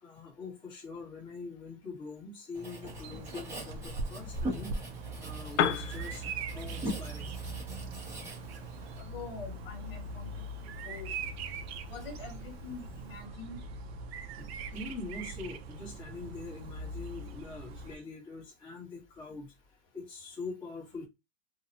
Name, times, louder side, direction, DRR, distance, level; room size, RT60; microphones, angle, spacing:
voice 1, 0.0-6.2 6.5-7.4 14.4-19.5 19.9-21.1, left 3 dB, 15° left, 0.8 m, -44 dB
Writing, 2.5-9.0, right 1 dB, 5° right, 0.4 m, -42 dB
Bird vocalization bird call bird song, 2.8-18.0, right 3 dB, 65° right, 0.5 m, -41 dB
Piano, 5.5-13.3, left 9 dB, 90° left, 0.5 m, -39 dB
voice 2, 9.0-10.4 10.8-11.1 11.8-13.6, left 4 dB, 55° left, 0.9 m, -45 dB
2.7 x 2.0 x 2.6 m
supercardioid pair, 170°, 35 cm